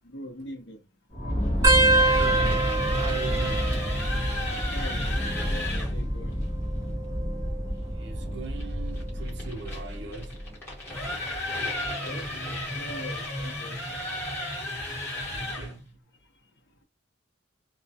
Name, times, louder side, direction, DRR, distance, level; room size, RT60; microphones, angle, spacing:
voice 1, 0.0-0.8 4.5-5.1 5.5-6.3 11.5-11.6 12.0-13.8, equal, 65° left, 0.7 m, -42 dB
sound 1, 1.1-10.7, equal, 25° left, 0.6 m, -29 dB
sound 2, 1.6-4.8 5.1-5.7 6.7-8.2 8.8-9.1 10.3-10.7 12.2-12.3, right 2 dB, 20° right, 0.6 m, -26 dB
sound 3, 1.9-6.0 8.6-15.8, left 1 dB, 10° left, 1.0 m, -34 dB
voice 2, 2.0-3.9 7.9-10.4 15.3-15.9, right 3 dB, 65° right, 0.5 m, -40 dB
2.2 x 2.1 x 2.7 m
head